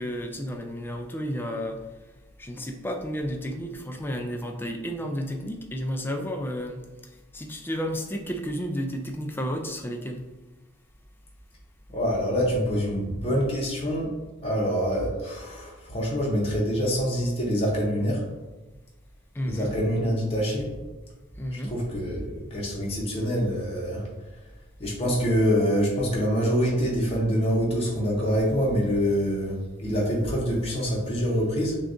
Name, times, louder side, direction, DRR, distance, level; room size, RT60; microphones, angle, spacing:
voice 1, 0.0-1.8 2.4-6.8 7.3-10.2 19.3-19.8 21.4-21.7, equal, 10° left, 4 dB, 0.3 m, -32 dB
voice 2, 11.9-14.1 14.4-18.2 19.4-20.7 21.5-24.1 24.8-31.8, equal, 30° left, -4 dB, 0.8 m, -25 dB
6.2 x 2.3 x 2.6 m, 1.2 s
head